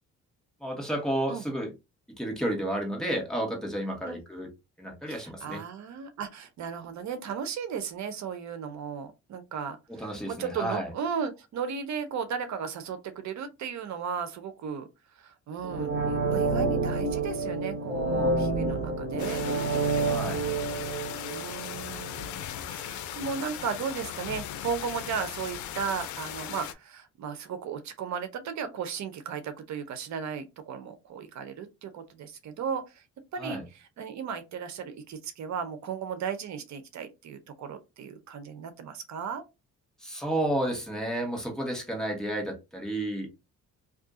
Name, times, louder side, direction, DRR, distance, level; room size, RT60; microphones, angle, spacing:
voice 1, 0.6-1.7 2.1-4.5 4.8-5.6 9.9-10.9 20.1-20.4 33.4-33.6 40.0-43.3, right 1 dB, ahead, 1.4 m, -31 dB
voice 2, 5.1-9.8 10.3-14.9 15.2-19.4 21.3-33.0 33.3-39.4, right 6 dB, 65° right, 0.7 m, -35 dB
sound 1, 15.6-22.4 22.8-22.9, right 3 dB, 40° right, 1.1 m, -29 dB
sound 2, 19.2-26.7, left 11 dB, 75° left, 0.5 m, -38 dB
2.7 x 2.5 x 3.6 m
cardioid pair, 90°, 30 cm